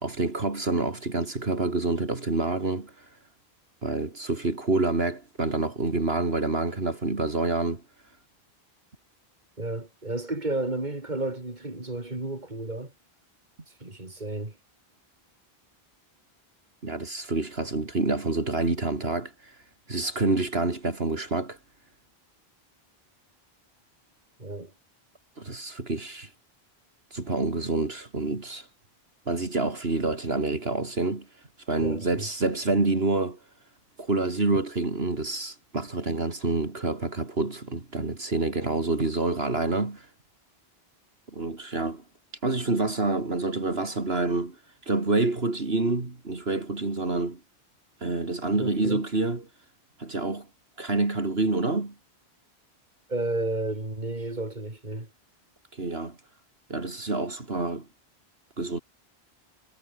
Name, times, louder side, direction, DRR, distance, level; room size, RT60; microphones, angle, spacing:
voice 1, 0.0-3.1 3.8-7.8 16.8-19.6 19.9-21.6 25.4-26.3 27.1-28.7 29.3-31.3 31.7-33.4 34.0-40.1 41.3-42.0 42.4-44.6 44.8-47.4 48.0-49.4 50.0-50.5 50.8-51.9 55.7-56.2 56.7-57.9 58.6-58.8, right 3 dB, 70° right, 3.4 m, -27 dB
voice 2, 9.6-12.9 13.8-14.6 24.4-24.7 31.8-32.3 48.5-49.1 53.1-55.1, right 2 dB, 45° right, 4.1 m, -32 dB
omnidirectional pair, 1.1 m